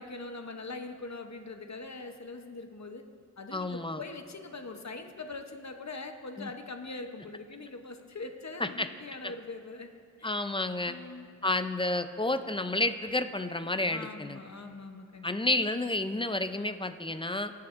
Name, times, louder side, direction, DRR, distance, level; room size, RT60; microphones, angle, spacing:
voice 1, 0.0-3.0 3.4-9.9 10.2-10.5 10.9-11.3 13.9-15.3, left 3 dB, 60° left, 5 dB, 0.8 m, -42 dB
voice 2, 3.5-4.0 6.4-6.5 8.6-8.9 9.2-9.3 10.2-11.0 11.4-14.4 15.2-17.5, left 2 dB, 15° left, 10 dB, 0.4 m, -30 dB
19.5 x 8.5 x 2.5 m, 2.3 s
wide cardioid pair, 50°, 31 cm